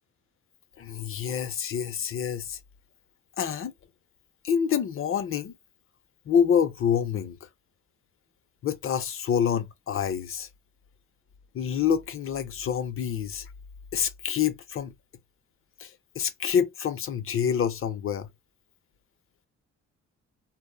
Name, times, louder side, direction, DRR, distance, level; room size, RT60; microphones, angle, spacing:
voice 1, 0.8-2.6 3.4-3.7 4.4-5.6 6.3-7.5 8.6-10.5 11.5-13.5 13.9-14.9 15.8-18.3, left 8 dB, 45° left, 0.6 m, -27 dB
2.1 x 2.1 x 3.2 m
cardioid pair, 90°, 30 cm